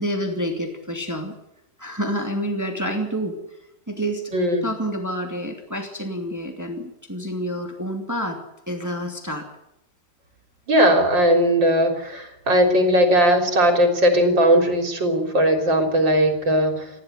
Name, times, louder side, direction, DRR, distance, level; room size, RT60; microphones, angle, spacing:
voice 1, 0.0-1.3 1.8-3.4 3.9-4.3 4.6-8.4 8.7-9.5, equal, 10° right, 4 dB, 2.7 m, -28 dB
voice 2, 4.3-4.6 10.7-16.9, equal, 90° right, 5 dB, 4.3 m, -18 dB
20.5 x 15.0 x 9.4 m, 0.86 s
omnidirectional pair, 2.0 m